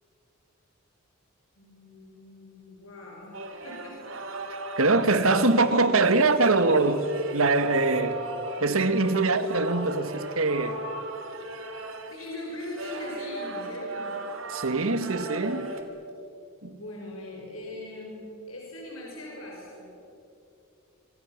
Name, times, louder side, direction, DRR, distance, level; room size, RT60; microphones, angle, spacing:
voice 1, 1.6-3.4 3.6-4.0 4.4-4.5 12.1-14.1 16.7-19.9, left 1 dB, 85° left, -2 dB, 6.1 m, -40 dB
sound 1, 3.3-15.8, right 2 dB, 70° right, 2.9 m, -37 dB
voice 2, 4.5-8.2 8.6-10.8 14.5-15.7 16.6-16.7, right 3 dB, 85° right, 10 dB, 1.8 m, -23 dB
26.5 x 26.0 x 7.4 m, 2.7 s
head